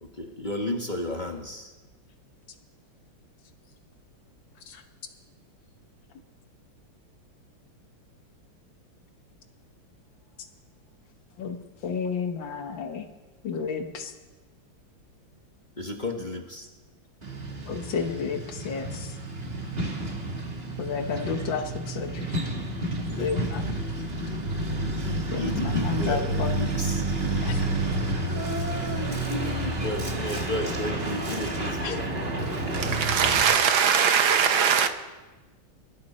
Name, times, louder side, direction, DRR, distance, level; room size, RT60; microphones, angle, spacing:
voice 1, 0.0-1.7 15.8-16.7 23.1-24.3 24.9-27.7 28.2-32.6, left 1 dB, 25° left, 1.1 m, -34 dB
voice 2, 11.8-13.1 13.4-14.1 17.7-19.1 20.8-22.4 23.0-23.6 25.0-26.6 27.4-27.7 31.8-31.9, left 6 dB, 65° left, 1.8 m, -32 dB
Truck, 17.2-33.4, right 2 dB, 30° right, 1.7 m, -30 dB
voice 3, 32.7-34.9, right 7 dB, 70° right, 1.8 m, -21 dB
23.5 x 13.0 x 4.3 m
omnidirectional pair, 2.3 m